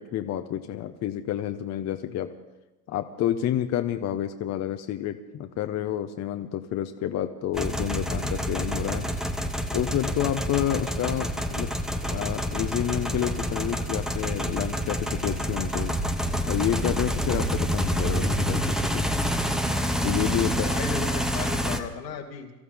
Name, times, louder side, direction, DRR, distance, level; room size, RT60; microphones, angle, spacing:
voice 1, 0.0-2.3 2.9-9.1 9.7-11.7 12.1-16.0 16.5-19.1 20.0-20.7, left 11 dB, 30° left, 8 dB, 1.0 m, -29 dB
sound 1, 7.5-21.8, equal, ahead, 1.1 m, -27 dB
voice 2, 20.4-22.5, left 6 dB, 80° left, -1 dB, 2.6 m, -36 dB
24.0 x 14.0 x 3.6 m, 1.1 s
figure-of-eight pair, 80°, 49 cm